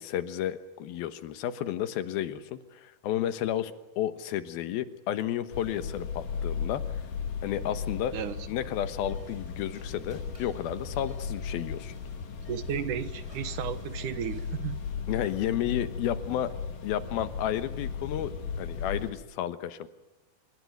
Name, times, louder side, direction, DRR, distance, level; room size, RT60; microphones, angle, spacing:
voice 1, 0.0-6.8 7.4-8.2 8.5-11.9 15.1-16.5 16.8-19.9, left 11 dB, 85° left, 12 dB, 3.1 m, -32 dB
sound 1, 5.5-19.1, left 6 dB, 70° left, 3.9 m, -36 dB
voice 2, 8.1-8.5 12.5-14.8, right 9 dB, 65° right, 12 dB, 2.4 m, -34 dB
sound 2, 9.0-15.3, right 1 dB, 10° right, 6.5 m, -58 dB
26.5 x 22.5 x 9.4 m, 0.97 s
omnidirectional pair, 4.2 m